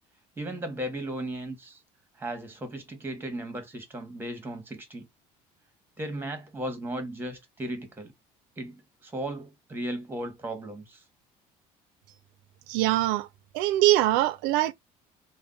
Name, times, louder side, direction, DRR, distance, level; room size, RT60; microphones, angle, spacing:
voice 1, 0.4-1.8 2.2-5.1 6.0-8.1 8.6-11.0, right 1 dB, 15° right, 1.2 m, -36 dB
voice 2, 12.7-13.3 13.5-14.7, right 15 dB, 85° right, 0.4 m, -23 dB
3.3 x 2.2 x 3.8 m
cardioid pair, 120°, 14 cm